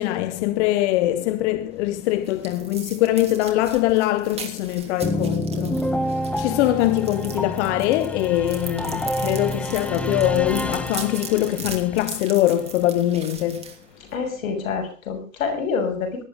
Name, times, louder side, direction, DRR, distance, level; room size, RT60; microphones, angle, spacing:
voice 1, 0.0-6.0 6.4-13.7, left 14 dB, 55° left, 1.2 m, -22 dB
sound 1, 1.7-14.4, right 6 dB, 15° right, 3.0 m, -40 dB
sound 2, 5.0-11.8, equal, 5° left, 1.0 m, -28 dB
voice 2, 14.1-16.2, left 5 dB, 85° left, 6.6 m, -27 dB
19.0 x 11.5 x 5.2 m
supercardioid pair, 140°, 40 cm